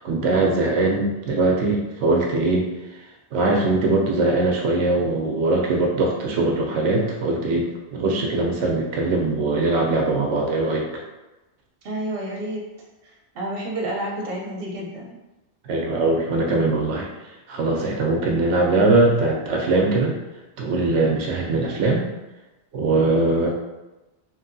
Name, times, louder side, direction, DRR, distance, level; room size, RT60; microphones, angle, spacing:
voice 1, 0.0-2.7 3.3-11.0 15.7-17.1 17.5-20.2 20.6-22.0 22.7-23.5, right 2 dB, 90° right, 0 dB, 0.9 m, -21 dB
voice 2, 11.8-12.6 13.0-15.2, right 1 dB, 60° right, -3 dB, 0.9 m, -30 dB
3.0 x 2.7 x 2.6 m, 1.1 s
omnidirectional pair, 1.2 m